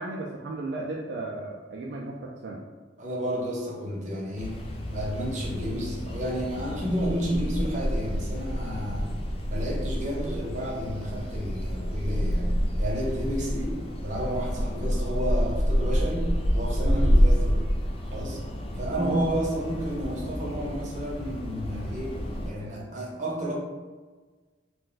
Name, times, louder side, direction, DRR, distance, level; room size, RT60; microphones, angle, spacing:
voice 1, 0.0-2.6 13.4-13.5 16.8-17.1 19.0-19.2, right 2 dB, 60° right, -2 dB, 0.3 m, -34 dB
voice 2, 3.0-4.6 4.9-9.1 9.5-17.7 18.0-18.4 18.7-22.2 22.4-23.5, equal, 40° right, -3 dB, 0.7 m, -31 dB
sound 1, 4.4-22.5, equal, 30° left, 0.3 m, -28 dB
2.6 x 2.1 x 3.8 m, 1.4 s
head